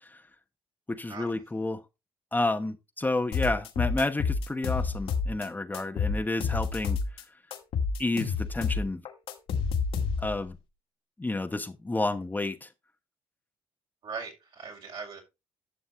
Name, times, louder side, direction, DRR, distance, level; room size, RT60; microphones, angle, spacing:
voice 1, 0.9-1.8 2.3-7.0 8.0-9.0 10.2-10.6 11.2-12.7, left 2 dB, 15° left, 1.2 m, -30 dB
sound 1, 3.3-5.5 5.7-7.2 7.5-10.4, left 5 dB, 70° left, 2.2 m, -29 dB
voice 2, 14.0-15.2, right 5 dB, 60° right, 5.5 m, -39 dB
11.5 x 6.9 x 3.2 m
supercardioid pair, 65°, 10 cm